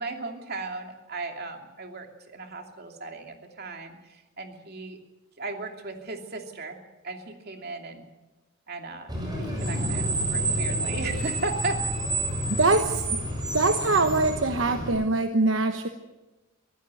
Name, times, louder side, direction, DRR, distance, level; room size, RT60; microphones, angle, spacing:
voice 1, 0.0-5.0 5.4-6.8 7.0-8.1 8.7-11.8, right 3 dB, 50° right, 3 dB, 2.8 m, -36 dB
Screech, 9.1-14.9, right 1 dB, 20° right, 6.6 m, -29 dB
voice 2, 12.5-13.2 13.5-15.9, right 3 dB, 70° right, 7 dB, 1.1 m, -23 dB
24.5 x 15.5 x 7.8 m, 1.1 s
head